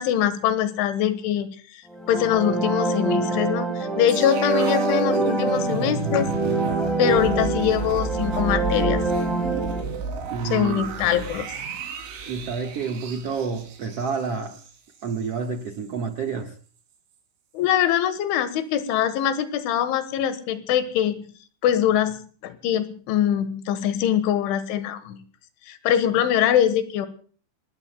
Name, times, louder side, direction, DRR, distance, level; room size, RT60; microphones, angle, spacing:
voice 1, 0.0-1.8 2.1-6.3 7.0-9.0 10.5-11.5 17.5-21.3 21.6-25.2 25.7-27.1, left 10 dB, 85° left, 11 dB, 3.8 m, -23 dB
sound 1, 1.9-9.8, right 2 dB, ahead, 4.4 m, -25 dB
sound 2, 4.1-15.3 15.6-15.8, right 5 dB, 90° right, 5.6 m, -32 dB
voice 2, 10.3-11.3 12.2-14.6 15.0-16.5, right 5 dB, 70° right, 4 dB, 1.5 m, -29 dB
29.5 x 20.0 x 2.3 m, 0.43 s
omnidirectional pair, 5.3 m